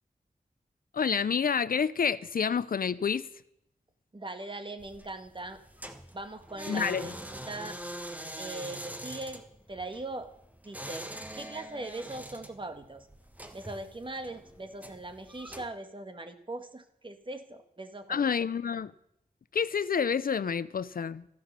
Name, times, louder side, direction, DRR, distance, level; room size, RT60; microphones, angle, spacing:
voice 1, 0.9-3.3 6.7-7.1 18.1-18.9 19.5-21.3, left 6 dB, 75° left, 0.6 m, -28 dB
voice 2, 4.1-5.6 6.1-7.8 8.4-10.3 10.6-11.1 11.3-13.1 13.5-18.3, right 2 dB, 35° right, 1.6 m, -40 dB
sound 1, 4.8-15.7, right 1 dB, 10° right, 1.6 m, -44 dB
14.0 x 11.0 x 6.7 m
wide cardioid pair, 70°, 15 cm